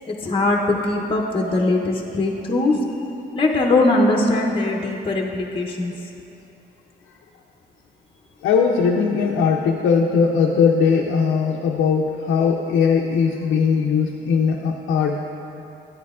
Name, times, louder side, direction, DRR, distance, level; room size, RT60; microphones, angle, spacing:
voice 1, 0.0-2.7 3.3-5.9, left 2 dB, 25° left, 0 dB, 0.7 m, -20 dB
voice 2, 8.4-15.2, left 6 dB, 90° left, 0 dB, 0.5 m, -19 dB
11.0 x 8.4 x 2.4 m, 2.8 s
cardioid pair, 90°, 20 cm